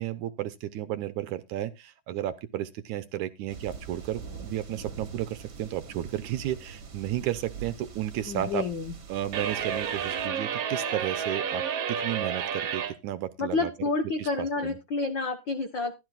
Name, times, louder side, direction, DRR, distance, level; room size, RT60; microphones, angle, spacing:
voice 1, 0.0-8.7 9.1-13.7 14.2-14.8, right 12 dB, 75° right, 2.0 m, -33 dB
sound 1, 3.5-10.3, right 6 dB, 40° right, 1.9 m, -44 dB
voice 2, 8.3-8.9 13.4-15.9, left 3 dB, 70° left, 1.1 m, -29 dB
sound 2, 9.3-13.0, right 8 dB, 60° right, 1.8 m, -30 dB
15.5 x 12.5 x 2.4 m
omnidirectional pair, 3.9 m